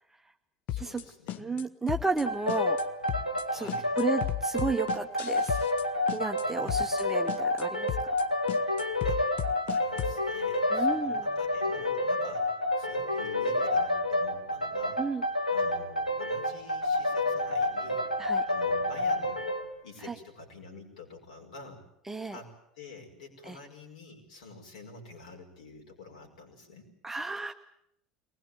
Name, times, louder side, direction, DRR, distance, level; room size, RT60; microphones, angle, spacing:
voice 1, 0.7-1.6 3.5-3.9 6.6-6.9 9.0-9.3 9.6-15.0 15.5-18.1 18.5-19.4 19.8-21.8 22.3-26.9, left 3 dB, 70° left, 1 dB, 5.4 m, -48 dB
sound 1, 0.7-1.6 1.9-2.2 2.5-2.8 3.1-3.4 3.7-5.8 6.1-6.4 6.7-7.0 7.3-7.6 7.9-8.2 8.5-10.2, left 13 dB, 45° left, 0.9 m, -34 dB
voice 2, 1.4-2.8 3.5-3.7 4.0-5.5 6.1-7.9 8.6-8.7 10.7-11.3 15.0-15.2 18.2-18.4 20.0-20.1 22.1-22.4 23.5-23.6 27.0-27.5, right 4 dB, 10° right, 4 dB, 1.0 m, -33 dB
sound 2, 2.3-19.7, left 1 dB, 90° left, 1.6 m, -29 dB
23.0 x 20.0 x 9.0 m, 0.79 s
figure-of-eight pair, 70°, 4 cm